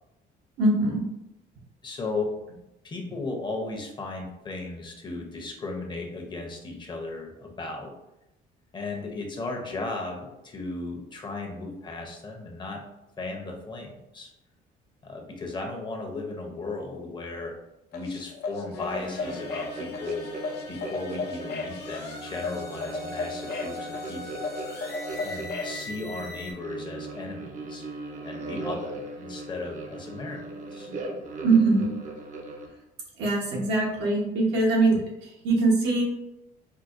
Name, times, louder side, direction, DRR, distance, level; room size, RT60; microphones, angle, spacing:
voice 1, 0.6-1.0 31.4-31.9 33.2-36.0, right 3 dB, 85° right, -3 dB, 1.0 m, -22 dB
voice 2, 1.8-2.3 2.8-7.9 8.7-12.8 13.2-14.3 15.0-17.5 17.9-20.3 20.7-24.4 25.2-27.8 28.2-30.4 30.7-30.9, left 3 dB, 25° left, 1 dB, 0.7 m, -36 dB
sound 1, 17.9-25.8, left 3 dB, 70° left, 0.5 m, -35 dB
sound 2, 18.7-26.5, left 3 dB, 85° left, 0.9 m, -41 dB
sound 3, 19.2-32.7, right 2 dB, 45° right, 0.6 m, -39 dB
4.5 x 2.2 x 2.5 m, 0.89 s
cardioid pair, 110°, 17 cm